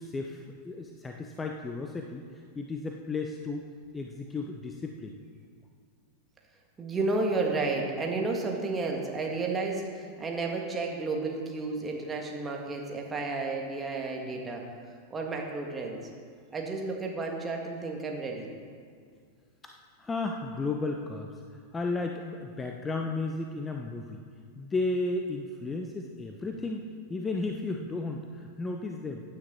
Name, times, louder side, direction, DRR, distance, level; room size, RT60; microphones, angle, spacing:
voice 1, 0.0-3.6 3.9-5.1 19.6-19.7 20.0-24.2 24.6-29.2, left 3 dB, 15° left, 3 dB, 0.8 m, -34 dB
voice 2, 6.8-14.6 15.1-16.1 16.5-18.5, right 3 dB, 15° right, 0 dB, 2.0 m, -32 dB
15.5 x 9.7 x 4.0 m, 2.1 s
figure-of-eight pair, 90°, 0 cm